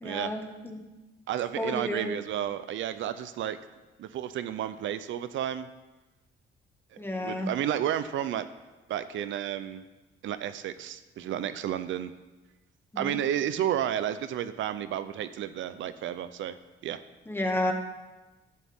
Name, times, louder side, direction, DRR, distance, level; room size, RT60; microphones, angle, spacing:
voice 1, 0.0-0.8 1.6-2.1 7.0-7.5 12.9-13.2 17.3-17.7, left 1 dB, 10° left, 2 dB, 1.9 m, -31 dB
voice 2, 1.3-3.6 4.0-5.7 7.1-8.4 8.9-9.8 10.2-12.1 13.0-16.6 16.8-17.0, right 10 dB, 75° right, 12 dB, 0.6 m, -32 dB
15.0 x 11.5 x 3.7 m, 1.1 s
cardioid pair, 90°, 20 cm